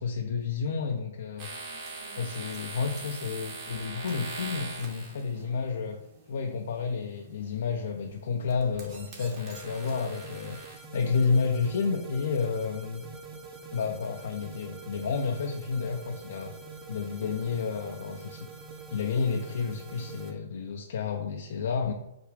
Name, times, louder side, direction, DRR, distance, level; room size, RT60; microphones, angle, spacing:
voice 1, 0.0-1.5 2.2-6.0 6.3-13.1 13.7-16.5 16.9-18.5 18.9-21.9, left 5 dB, 70° left, 3 dB, 0.5 m, -30 dB
sound 1, 1.0-9.9, right 5 dB, 70° right, 0.9 m, -57 dB
sound 2, 1.4-5.4 7.4-7.7 8.2-10.8, right 3 dB, 40° right, 1.5 m, -42 dB
sound 3, 9.5-20.3, right 4 dB, 20° right, 0.7 m, -45 dB
5.1 x 2.2 x 4.7 m, 0.83 s
hypercardioid pair, 125°, 0 cm